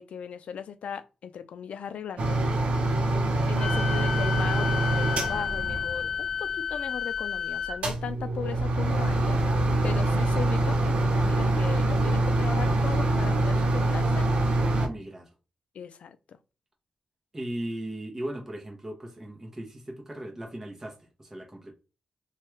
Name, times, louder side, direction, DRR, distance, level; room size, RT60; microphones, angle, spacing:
voice 1, 0.0-2.4 3.5-9.4 9.8-14.3 14.9-15.0 15.7-16.4, left 7 dB, 85° left, 0.3 m, -38 dB
sound 1, 2.2-6.4 7.7-14.9, right 2 dB, 75° right, 0.7 m, -25 dB
Wind instrument woodwind instrument, 3.6-7.8, left 8 dB, 45° left, 0.8 m, -31 dB
voice 2, 14.8-15.3 17.3-21.7, right 1 dB, 20° right, 0.8 m, -37 dB
3.0 x 2.3 x 3.1 m
wide cardioid pair, 120°, 2 cm